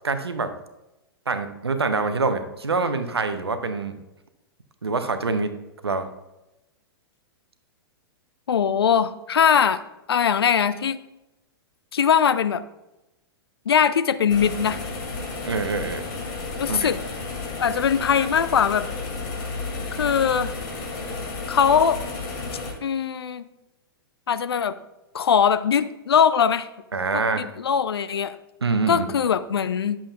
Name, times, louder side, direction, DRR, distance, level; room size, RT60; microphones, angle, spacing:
voice 1, 0.0-0.5 1.3-4.0 4.8-5.5 5.8-6.1 15.5-16.0 16.7-16.9 26.9-27.5 28.6-29.1, right 4 dB, 85° right, 9 dB, 0.8 m, -25 dB
voice 2, 8.5-9.8 10.1-11.0 11.9-12.6 13.7-14.8 16.6-17.0 17.6-18.9 19.9-20.5 21.5-22.0 22.8-23.4 24.3-24.7 25.1-26.7 27.4-28.4 28.9-30.0, left 7 dB, 75° left, 13 dB, 0.5 m, -21 dB
sound 1, 14.3-22.7, left 3 dB, 50° left, 2.4 m, -32 dB
11.0 x 7.2 x 2.3 m, 0.96 s
figure-of-eight pair, 105°, 13 cm